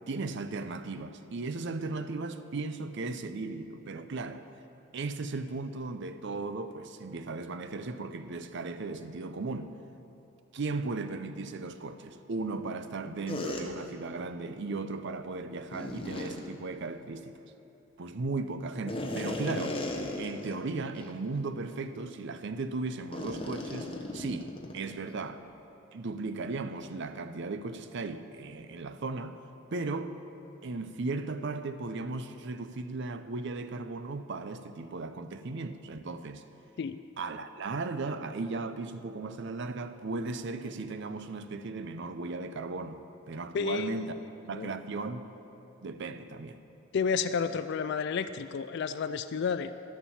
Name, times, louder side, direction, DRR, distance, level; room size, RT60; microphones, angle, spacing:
voice 1, 0.1-4.5 4.9-9.7 10.5-17.4 18.0-19.8 20.2-25.4 25.9-29.4 29.7-30.1 30.6-36.4 37.2-43.0 43.3-44.2 44.5-45.2 45.8-46.6, right 3 dB, 55° right, 0.5 m, -36 dB
sound 1, 13.3-13.6 15.7-16.4 18.9-20.6 20.9-21.1 21.7-21.8 23.1-24.9, left 1 dB, 25° left, 1.0 m, -36 dB
voice 2, 43.5-44.1 44.5-44.7 46.9-49.7, left 6 dB, 55° left, 0.3 m, -31 dB
11.5 x 7.0 x 7.2 m
head